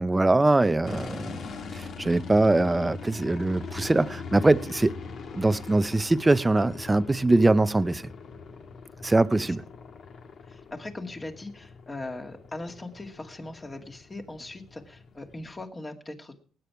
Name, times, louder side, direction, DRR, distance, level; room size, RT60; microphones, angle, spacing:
voice 1, 0.0-1.4 1.7-5.0 5.3-8.1 9.0-9.6, right 2 dB, 15° right, 0.6 m, -22 dB
sound 1, 0.8-15.6, left 5 dB, 60° left, 1.6 m, -42 dB
voice 2, 10.5-16.4, left 2 dB, 25° left, 2.2 m, -40 dB
20.0 x 9.1 x 4.8 m
cardioid pair, 90°, 0 cm